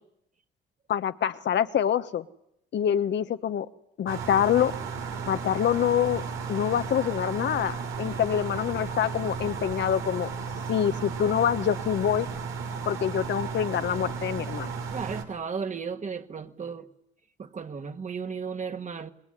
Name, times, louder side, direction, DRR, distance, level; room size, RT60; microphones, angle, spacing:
voice 1, 0.9-2.2 2.7-3.7 4.0-4.7 5.3-6.2 6.5-10.3 10.7-12.3 12.9-14.7, left 9 dB, 65° left, 1.2 m, -26 dB
sound 1, 4.1-15.2, right 5 dB, 90° right, 2.9 m, -34 dB
voice 2, 14.9-16.9 17.4-19.1, right 5 dB, 35° right, 1.8 m, -34 dB
27.0 x 21.0 x 10.0 m
cardioid pair, 90°, 20 cm